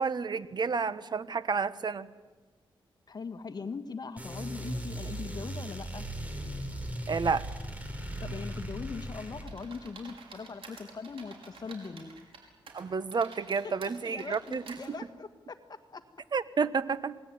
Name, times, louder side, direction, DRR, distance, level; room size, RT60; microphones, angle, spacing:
voice 1, 0.0-2.1 7.1-7.5 12.7-14.8 16.3-17.2, right 5 dB, 55° right, 14 dB, 1.2 m, -30 dB
voice 2, 3.1-6.1 8.2-12.1 13.6-13.7 14.0-16.0, left 4 dB, 50° left, 8 dB, 1.8 m, -41 dB
sound 1, 4.2-9.5, right 1 dB, 15° right, 5.5 m, -38 dB
sound 2, 9.5-12.4 12.7-14.9, right 5 dB, 85° right, 5.7 m, -50 dB
27.5 x 19.5 x 9.7 m, 1.3 s
cardioid pair, 85°, 9 cm